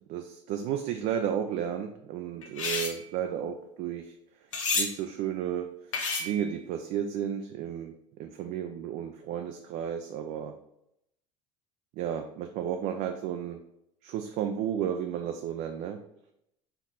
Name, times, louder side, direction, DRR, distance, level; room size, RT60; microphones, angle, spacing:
voice 1, 0.1-4.1 4.7-5.7 6.2-7.9 8.2-10.5 12.0-13.6 14.0-16.0, right 9 dB, 55° right, 5 dB, 0.4 m, -33 dB
sound 1, 2.4-3.0 4.5-4.9 5.9-6.5, left 3 dB, 85° left, 0.9 m, -30 dB
4.5 x 2.9 x 3.7 m, 0.80 s
hypercardioid pair, 70°, 16 cm